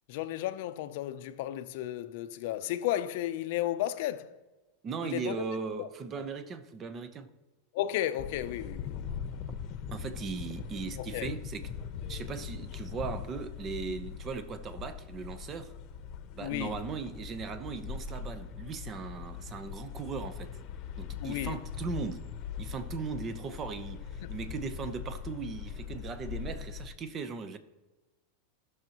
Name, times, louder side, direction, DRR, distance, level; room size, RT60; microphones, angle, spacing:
voice 1, 0.1-4.3 5.0-5.4 5.8-5.9 7.7-9.1 11.0-11.3 16.4-16.8 21.2-21.6 24.2-24.3, left 13 dB, 65° left, 0.6 m, -33 dB
voice 2, 4.8-7.3 9.9-11.7 12.1-15.7 16.3-20.5 21.0-22.3 22.6-27.6, right 5 dB, 30° right, 0.8 m, -38 dB
sound 1, 8.2-26.9, left 7 dB, 40° left, 0.9 m, -41 dB
16.5 x 6.4 x 3.0 m
supercardioid pair, 135°, 0 cm